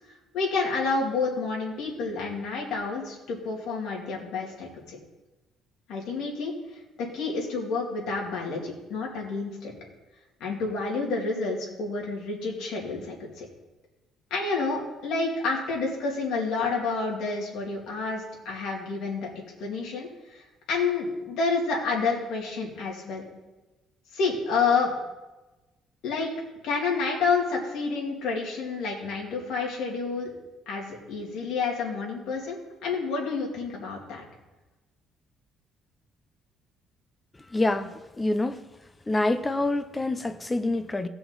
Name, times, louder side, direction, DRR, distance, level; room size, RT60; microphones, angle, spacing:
voice 1, 0.3-5.0 5.9-6.5 7.0-9.7 10.4-13.5 14.3-19.3 19.6-20.4 20.7-23.3 24.1-24.9 26.0-26.3 26.6-30.3 30.7-34.2, left 4 dB, 75° left, -1 dB, 2.8 m, -29 dB
voice 2, 37.5-38.7 39.1-41.1, left 2 dB, 15° left, 10 dB, 0.6 m, -26 dB
17.0 x 6.0 x 4.0 m, 1.1 s
cardioid pair, 145°, 0 cm